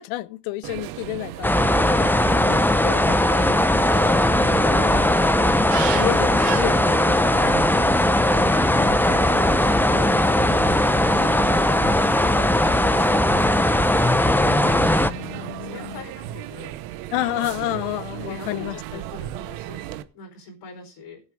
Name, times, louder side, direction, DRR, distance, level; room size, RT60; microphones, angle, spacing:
voice 1, 0.0-1.9 5.9-7.5 14.4-16.0 17.1-18.8, left 17 dB, 80° left, 0.8 m, -30 dB
sound 1, 0.6-20.0, right 14 dB, 85° right, 1.0 m, -34 dB
sound 2, 1.4-15.1, left 1 dB, 5° left, 0.8 m, -19 dB
voice 2, 2.2-5.4 12.0-14.0 14.4-16.8 17.7-17.8 18.2-21.2, left 4 dB, 65° left, 4.5 m, -41 dB
18.0 x 8.1 x 3.7 m
supercardioid pair, 70°, 45 cm